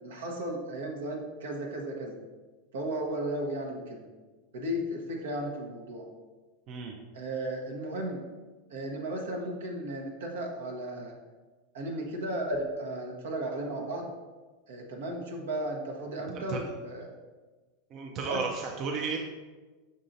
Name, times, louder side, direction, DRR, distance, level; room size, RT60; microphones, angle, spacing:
voice 1, 0.0-2.2 2.7-4.1 4.5-6.1 7.1-8.2 8.7-11.2 11.7-14.1 14.7-17.1 18.2-18.4, right 1 dB, 75° right, 1 dB, 0.9 m, -35 dB
voice 2, 17.9-19.2, right 5 dB, 45° right, 1 dB, 0.5 m, -33 dB
5.5 x 3.7 x 2.6 m, 1.3 s
hypercardioid pair, 100°, 0 cm